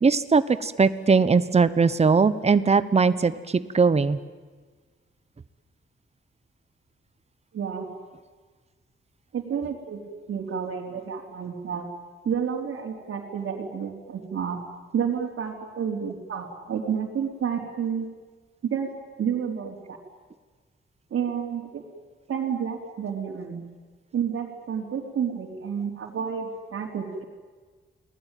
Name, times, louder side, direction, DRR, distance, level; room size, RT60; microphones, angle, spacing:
voice 1, 0.0-4.2, right 5 dB, 30° right, 14 dB, 1.1 m, -20 dB
voice 2, 7.5-7.9 9.3-10.0 10.3-11.9 12.2-14.6 14.9-18.1 18.6-18.9 19.2-20.0 21.1-21.8 22.3-23.6 24.1-27.2, right 7 dB, 85° right, -1 dB, 4.0 m, -30 dB
29.5 x 20.5 x 9.3 m, 1.4 s
wide cardioid pair, 145°, 21 cm